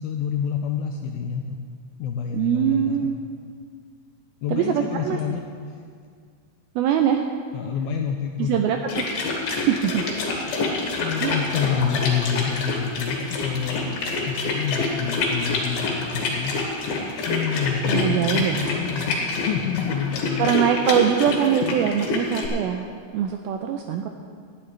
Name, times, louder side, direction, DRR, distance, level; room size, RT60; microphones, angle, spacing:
voice 1, 0.0-1.6 2.0-3.1 4.4-5.4 5.7-5.8 7.5-8.6 10.5-10.7 11.0-16.6 17.3-20.5, left 7 dB, 85° left, 3 dB, 2.1 m, -28 dB
voice 2, 2.3-3.2 4.5-5.2 6.8-7.2 8.4-9.1 9.5-10.0 11.2-11.4 17.9-18.6 20.4-24.1, right 9 dB, 85° right, 4 dB, 2.1 m, -23 dB
sound 1, 8.9-22.5, left 3 dB, 65° left, 3.5 m, -27 dB
18.5 x 11.5 x 3.2 m, 2.1 s
omnidirectional pair, 4.9 m